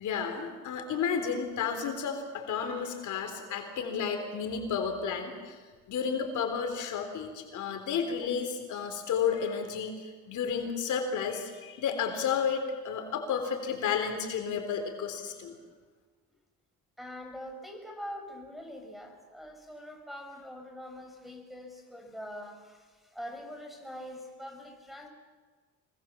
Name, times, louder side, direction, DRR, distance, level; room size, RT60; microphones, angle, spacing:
voice 1, 0.0-5.6 5.9-15.6, left 6 dB, 80° left, 5 dB, 3.8 m, -32 dB
voice 2, 17.0-25.1, equal, ahead, 2 dB, 5.2 m, -44 dB
25.0 x 22.0 x 7.4 m, 1.5 s
cardioid pair, 90°, 30 cm